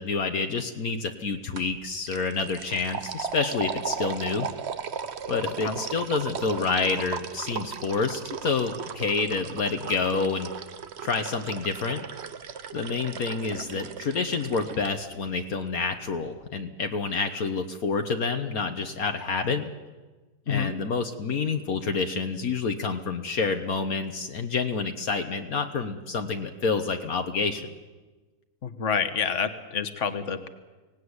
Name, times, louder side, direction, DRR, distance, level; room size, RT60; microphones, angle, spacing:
voice 1, 0.0-4.5 5.3-10.5 11.0-12.0 12.7-19.7 20.5-27.7, left 4 dB, 65° left, 5 dB, 1.6 m, -28 dB
sound 1, 1.6-1.8 2.1-14.9, right 7 dB, 50° right, 1.1 m, -36 dB
voice 2, 28.6-30.5, left 6 dB, 50° left, 9 dB, 1.7 m, -28 dB
24.5 x 18.5 x 9.7 m, 1.3 s
omnidirectional pair, 1.6 m